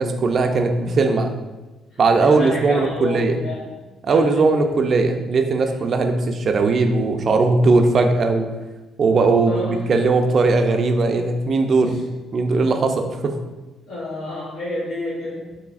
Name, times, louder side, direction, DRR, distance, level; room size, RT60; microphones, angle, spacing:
voice 1, 0.0-1.3 2.0-3.4 4.0-8.5 9.0-12.1 12.3-13.4, right 3 dB, 55° right, 5 dB, 0.5 m, -18 dB
voice 2, 1.9-3.7 4.1-4.4 5.6-5.8 9.5-9.8 11.8-12.0 12.5-12.8 13.9-15.4, left 2 dB, 90° left, -10 dB, 1.2 m, -30 dB
4.8 x 3.0 x 2.5 m, 1.2 s
supercardioid pair, 70°, 0 cm